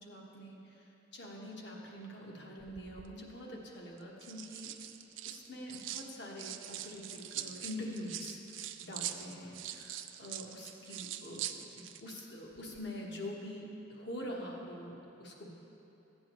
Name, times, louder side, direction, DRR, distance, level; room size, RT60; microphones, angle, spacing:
voice 1, 0.0-4.7 5.2-8.4 8.8-15.5, left 1 dB, 60° left, -2 dB, 1.3 m, -45 dB
sound 1, 2.6-3.1 4.0-6.1 6.4-12.2 12.5-12.8, right 11 dB, 85° right, 0.4 m, -43 dB
14.5 x 8.7 x 3.1 m, 3.0 s
head